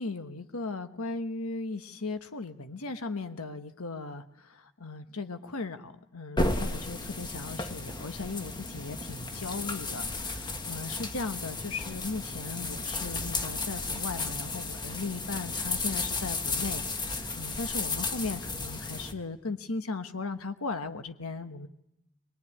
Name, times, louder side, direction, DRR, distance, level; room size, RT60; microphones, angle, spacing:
voice 1, 0.0-21.7, left 3 dB, 75° left, 9 dB, 1.3 m, -37 dB
sound 1, 6.4-19.1, left 3 dB, 20° left, 1.6 m, -34 dB
23.0 x 21.5 x 9.9 m, 0.83 s
head